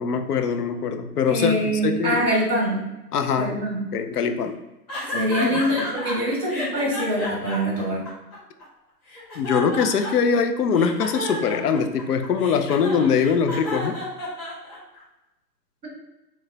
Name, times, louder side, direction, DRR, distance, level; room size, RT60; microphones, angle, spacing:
voice 1, 0.0-2.2 3.1-3.5 3.9-4.6 5.4-5.5 9.4-14.0, left 6 dB, 65° left, 7 dB, 0.6 m, -22 dB
voice 2, 1.3-2.8 3.4-3.8 5.1-8.0, equal, ahead, -15 dB, 0.5 m, -24 dB
sound 1, 4.9-6.1 6.5-8.6 9.1-10.4 10.7-15.0, left 1 dB, 25° left, 1.2 m, -32 dB
3.1 x 2.2 x 3.8 m, 1.0 s
hypercardioid pair, 155°, 50 cm